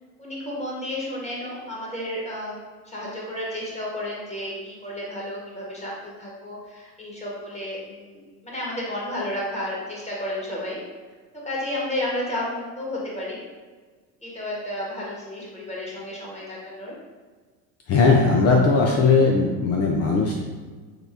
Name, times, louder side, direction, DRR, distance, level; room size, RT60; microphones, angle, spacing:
voice 1, 0.2-2.6 2.8-10.8 11.4-13.4 14.2-16.9, left 1 dB, 15° left, -5 dB, 1.4 m, -32 dB
voice 2, 17.9-20.3, left 4 dB, 35° left, 0 dB, 0.4 m, -18 dB
6.4 x 2.3 x 2.5 m, 1.4 s
figure-of-eight pair, 70°, 49 cm